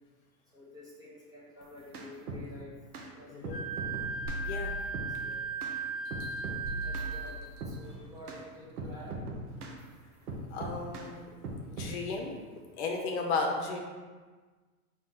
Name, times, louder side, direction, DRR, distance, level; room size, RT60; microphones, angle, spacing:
voice 1, 0.5-2.7 3.1-3.7 5.2-5.4 6.8-9.2, left 1 dB, 10° right, -7 dB, 0.7 m, -50 dB
sound 1, 1.6-2.5 2.9-3.1 3.4-4.5 4.9-5.1 5.6-5.8 6.1-6.6 6.9-7.1 7.6-7.8 8.3-8.4 8.8-9.8 10.3-11.1 11.4-12.0, right 2 dB, 85° right, 0.9 m, -39 dB
voice 2, 3.3-3.6 4.4-4.7 10.5-11.3 11.7-12.4 12.8-13.8, left 3 dB, 50° left, 1 dB, 0.8 m, -34 dB
Wind instrument woodwind instrument, 3.5-7.4, right 4 dB, 25° left, 0.4 m, -37 dB
sound 2, 4.3-5.6 6.1-8.2 8.8-8.9, right 1 dB, 55° right, 0.7 m, -41 dB
4.2 x 3.0 x 3.6 m, 1.4 s
hypercardioid pair, 125°, 44 cm